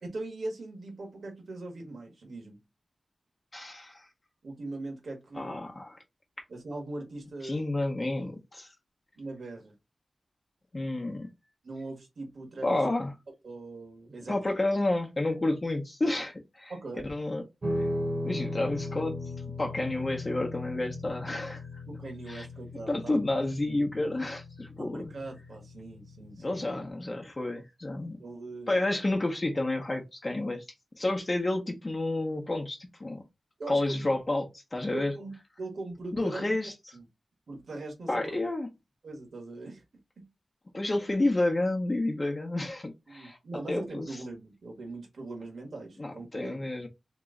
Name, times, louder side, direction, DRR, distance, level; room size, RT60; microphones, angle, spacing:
voice 1, 0.0-2.6 4.4-5.7 6.5-7.6 9.2-9.7 11.6-12.8 13.4-14.4 16.7-17.1 21.9-23.5 24.8-26.6 28.2-28.8 33.6-34.2 34.9-36.5 36.9-37.1 37.5-38.3 39.0-39.8 40.2-40.3 43.1-46.8, right 2 dB, 75° right, 1.3 m, -41 dB
voice 2, 3.5-4.0 5.3-6.0 7.4-8.7 10.7-11.3 12.6-13.1 14.3-16.7 17.1-17.4 18.2-19.2 19.6-21.6 22.3-22.5 22.9-25.1 26.4-28.2 28.7-30.6 31.0-33.2 33.7-35.1 36.1-36.7 38.1-38.7 40.7-43.4 43.7-44.1 46.0-46.9, left 2 dB, 35° left, 0.7 m, -30 dB
Guitar, 17.6-26.9, left 1 dB, 50° right, 1.0 m, -37 dB
3.0 x 2.9 x 3.7 m
wide cardioid pair, 100°, 0 cm